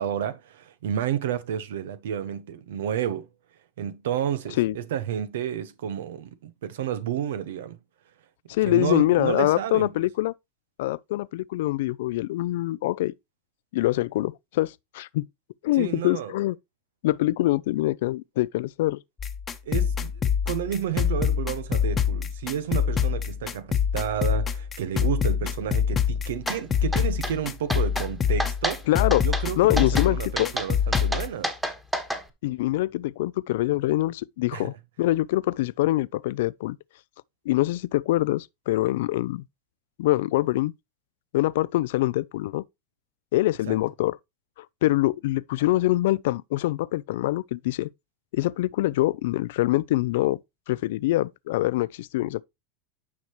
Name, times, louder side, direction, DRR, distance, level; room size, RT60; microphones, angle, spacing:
voice 1, 0.0-3.3 3.8-7.8 8.6-9.9 15.8-16.3 19.6-28.9 29.2-31.5 34.5-34.8 43.7-43.8, right 9 dB, 85° right, 0.9 m, -31 dB
voice 2, 8.5-10.3 10.8-13.1 13.7-15.3 15.6-16.6 17.0-19.0 28.9-29.2 29.6-30.5 32.4-36.8 37.5-39.4 40.0-40.7 41.3-42.6 43.3-44.2 44.6-47.9 48.3-50.4 50.7-52.4, left 16 dB, 75° left, 0.3 m, -24 dB
sound 1, 19.2-31.3, left 8 dB, 20° left, 1.0 m, -25 dB
sound 2, 26.5-26.6 26.9-27.3 27.7-28.1 28.4-28.8 29.1-29.5 29.8-30.1 30.4-32.2, right 1 dB, 5° right, 1.4 m, -29 dB
9.6 x 5.8 x 3.0 m
supercardioid pair, 135°, 0 cm